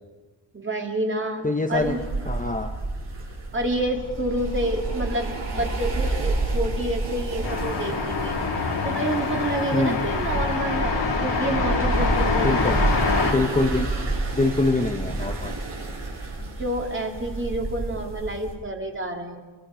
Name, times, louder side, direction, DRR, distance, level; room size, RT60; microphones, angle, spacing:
voice 1, 0.5-2.0 3.5-8.4 8.8-12.8 16.4-19.4, right 1 dB, 25° right, 2 dB, 2.7 m, -29 dB
voice 2, 1.4-2.7 9.7-10.0 12.4-12.8 13.2-13.9 14.3-15.5, left 2 dB, 20° left, 3 dB, 0.9 m, -24 dB
sound 1, 1.7-18.5, right 2 dB, 65° right, 6.6 m, -29 dB
sound 2, 7.4-13.3, left 4 dB, 65° left, 4.0 m, -25 dB
28.5 x 23.5 x 5.1 m, 1.3 s
wide cardioid pair, 160°, 45 cm